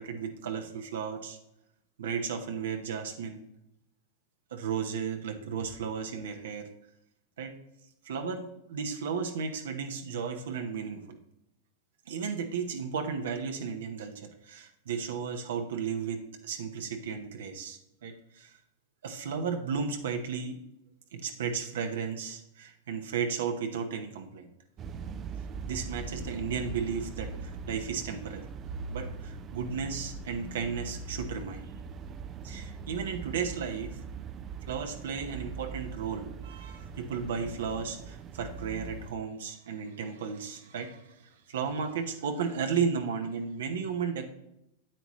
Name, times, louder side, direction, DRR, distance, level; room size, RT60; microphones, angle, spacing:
voice 1, 0.0-1.4 2.0-3.5 4.5-6.7 7.4-7.6 8.0-11.2 12.1-18.6 19.0-20.6 21.1-24.5 25.7-28.5 28.9-31.7 32.4-34.0 34.7-44.3, right 6 dB, 75° right, 5 dB, 1.0 m, -34 dB
sound 1, 24.8-39.1, right 5 dB, 35° right, 0.5 m, -41 dB
8.8 x 8.2 x 3.1 m, 0.83 s
hypercardioid pair, 105°, 0 cm